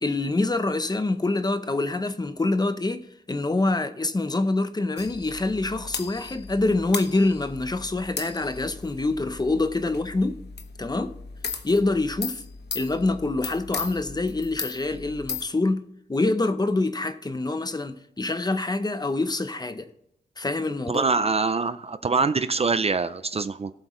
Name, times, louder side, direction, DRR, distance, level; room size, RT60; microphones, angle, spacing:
voice 1, 0.0-10.4 10.8-11.1 11.6-12.4 12.7-19.9 20.4-21.0, left 2 dB, 20° left, 0.7 m, -26 dB
sound 1, 5.0-15.4, left 5 dB, 70° left, 1.1 m, -37 dB
voice 2, 20.9-23.7, right 4 dB, 35° right, 0.4 m, -24 dB
18.0 x 7.9 x 3.1 m
wide cardioid pair, 145°, 18 cm